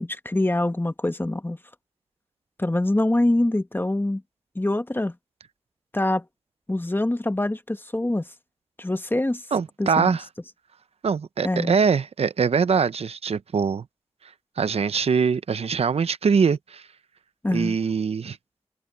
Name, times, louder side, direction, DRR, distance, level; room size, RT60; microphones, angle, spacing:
voice 1, 0.0-1.6 2.6-4.2 4.5-5.1 5.9-6.2 6.7-8.2 8.8-9.4 9.8-10.2 11.4-11.8 17.4-17.8, left 1 dB, 20° left, 1.5 m, -24 dB
voice 2, 9.5-10.2 11.0-13.8 14.6-16.8 17.5-18.4, right 6 dB, 80° right, 0.7 m, -23 dB
cardioid pair, 45°, 10 cm